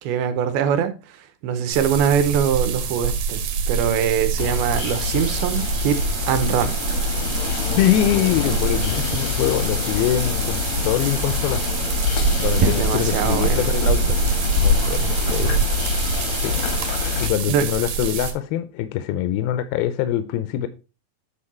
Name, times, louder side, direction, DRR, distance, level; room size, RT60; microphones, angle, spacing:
voice 1, 0.0-3.4 3.7-6.7 12.6-13.7 17.5-17.6, right 8 dB, 85° right, 2.7 m, -23 dB
sound 1, 1.7-18.3, right 7 dB, 70° right, 2.6 m, -25 dB
sound 2, 4.4-17.3, left 7 dB, 60° left, 1.5 m, -25 dB
voice 2, 7.8-11.6 12.4-14.2 14.6-15.7 16.4-16.5 17.2-20.7, left 12 dB, 85° left, 2.5 m, -23 dB
8.7 x 4.6 x 4.2 m
omnidirectional pair, 4.4 m